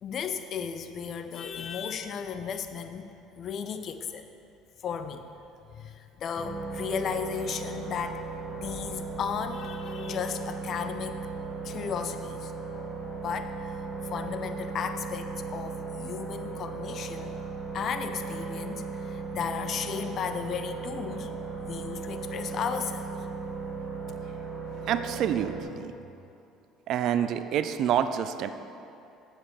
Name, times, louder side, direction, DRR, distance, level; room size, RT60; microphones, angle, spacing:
voice 1, 0.0-3.1 3.3-4.3 4.8-5.2 5.7-11.2 11.6-12.5 13.1-17.4 17.7-21.3 21.6-23.1, left 7 dB, 50° left, 9 dB, 0.7 m, -35 dB
sound 1, 6.4-25.6, right 4 dB, 30° left, 1.8 m, -37 dB
voice 2, 24.9-25.9 26.9-28.5, right 9 dB, 60° right, 10 dB, 0.5 m, -27 dB
7.8 x 7.5 x 6.7 m, 2.7 s
supercardioid pair, 75°, 0 cm